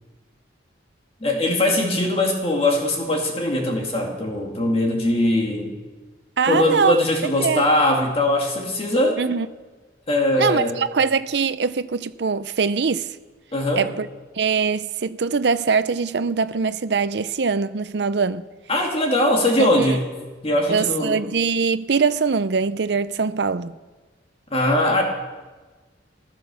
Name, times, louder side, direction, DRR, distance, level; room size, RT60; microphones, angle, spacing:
voice 1, 1.2-5.7 6.5-9.2 10.1-10.8 13.5-13.9 18.7-20.0 20.4-21.2 24.5-25.0, left 1 dB, 30° left, 2.1 m, -21 dB
voice 2, 6.4-7.0 7.4-7.7 9.2-9.5 10.4-13.1 13.8-14.1 14.4-18.5 19.6-20.0 20.7-23.7, right 5 dB, 60° right, 0.5 m, -22 dB
15.5 x 11.5 x 6.9 m
head